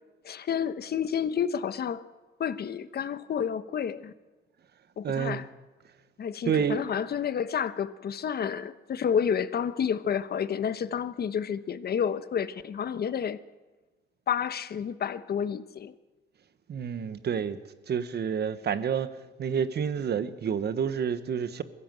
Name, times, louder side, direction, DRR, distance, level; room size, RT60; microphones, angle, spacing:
voice 1, 0.2-2.0 2.4-4.1 5.0-5.5 6.2-13.4 14.3-15.9, left 8 dB, 55° left, 1.1 m, -30 dB
voice 2, 5.0-5.4 6.4-6.9 16.7-17.6 17.9-19.1 19.4-21.6, right 7 dB, 55° right, 1.4 m, -29 dB
22.5 x 15.5 x 7.8 m
cardioid pair, 90°, 20 cm